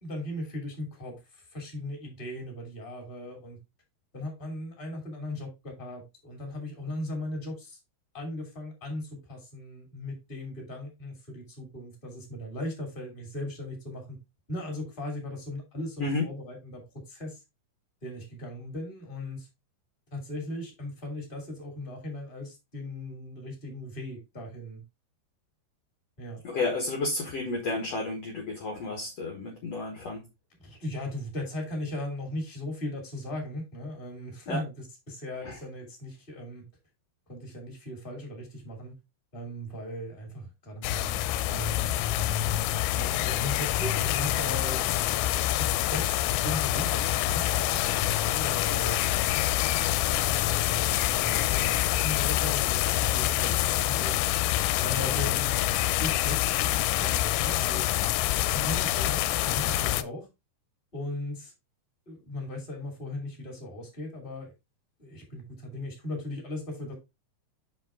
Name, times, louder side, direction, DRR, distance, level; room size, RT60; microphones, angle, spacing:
voice 1, 0.0-3.6 4.1-7.8 8.1-14.2 14.5-16.8 17.1-17.4 18.0-19.5 20.1-24.8 26.2-26.4 30.6-36.6 37.3-38.9 39.3-41.2 41.5-42.5 42.9-45.0 45.6-49.0 49.8-54.2 54.8-58.1 58.5-60.3 60.9-61.5 62.1-64.5 65.0-66.9, left 1 dB, 15° left, 2.0 m, -38 dB
voice 2, 26.4-30.3 34.5-34.6 35.4-35.6, left 2 dB, 65° left, 1.6 m, -31 dB
sound 1, 40.8-60.0, left 15 dB, 85° left, 2.7 m, -26 dB
7.2 x 5.3 x 3.6 m
omnidirectional pair, 5.1 m